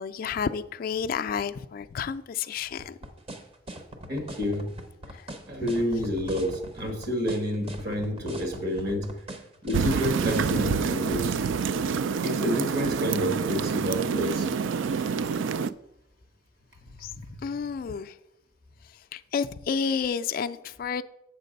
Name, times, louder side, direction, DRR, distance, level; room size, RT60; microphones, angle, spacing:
voice 1, 0.0-3.0 5.1-5.3 5.6-5.7 17.0-18.2 18.8-21.0, left 6 dB, 50° left, 0.3 m, -31 dB
sound 1, 2.8-10.7, right 1 dB, 30° right, 0.8 m, -40 dB
voice 2, 4.1-4.7 5.5-9.1 9.6-11.4 12.2-14.5 16.9-17.4, equal, 55° right, 1.6 m, -29 dB
sound 2, 9.7-15.7, right 6 dB, 90° right, 0.4 m, -27 dB
7.5 x 6.5 x 5.2 m
head